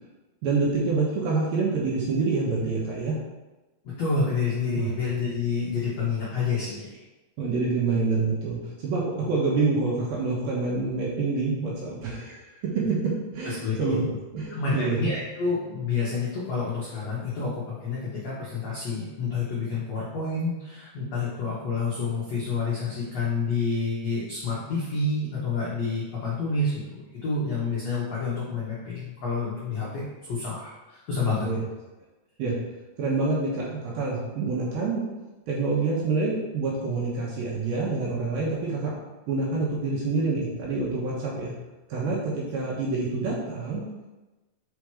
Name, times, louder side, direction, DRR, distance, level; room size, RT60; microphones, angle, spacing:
voice 1, 0.4-3.2 4.8-4.9 7.4-12.4 12.9-13.0 13.3-14.1 14.3-15.1 31.4-31.7 32.4-32.5 33.0-35.0 35.5-38.9 39.3-41.5 41.9-43.8, right 3 dB, 70° right, -5 dB, 2.5 m, -27 dB
voice 2, 3.8-7.0 13.4-14.0 14.5-31.5, left 4 dB, 70° left, -7 dB, 1.6 m, -29 dB
6.0 x 5.1 x 4.8 m, 1.1 s
omnidirectional pair, 5.1 m